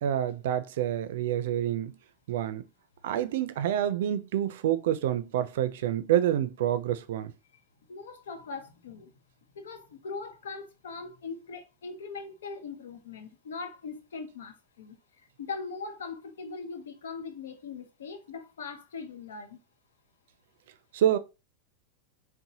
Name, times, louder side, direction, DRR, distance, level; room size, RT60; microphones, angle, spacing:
voice 1, 0.0-2.0 2.3-2.6 3.0-7.3 20.9-21.2, right 11 dB, 75° right, 0.4 m, -27 dB
voice 2, 7.9-9.1 9.5-15.0 15.4-19.6, left 4 dB, 90° left, 0.7 m, -40 dB
4.0 x 2.1 x 2.7 m
supercardioid pair, 120°, 0 cm